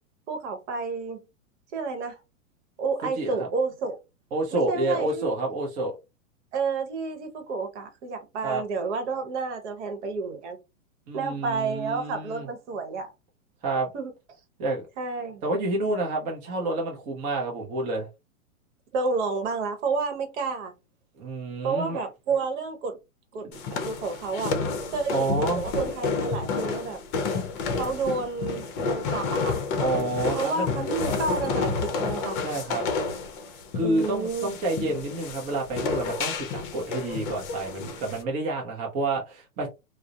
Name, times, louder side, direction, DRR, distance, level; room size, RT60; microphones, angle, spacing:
voice 1, 0.3-1.2 1.7-2.2 2.8-4.0 4.5-5.3 6.5-10.6 11.1-13.1 13.9-14.1 15.0-15.5 18.9-20.7 21.6-23.0 23.3-24.6 24.9-27.0 27.7-29.6 30.3-32.4 33.8-34.5, right 4 dB, 55° right, 0.9 m, -30 dB
voice 2, 3.2-3.5 4.3-5.9 8.4-8.6 11.1-12.5 13.6-13.9 14.6-14.8 15.4-18.1 21.2-22.0 25.1-25.6 29.8-30.7 32.4-32.9 33.7-39.7, right 2 dB, 20° right, 0.5 m, -29 dB
sound 1, 23.5-38.2, left 4 dB, 40° left, 0.6 m, -30 dB
2.3 x 2.0 x 2.7 m
hypercardioid pair, 135°, 41 cm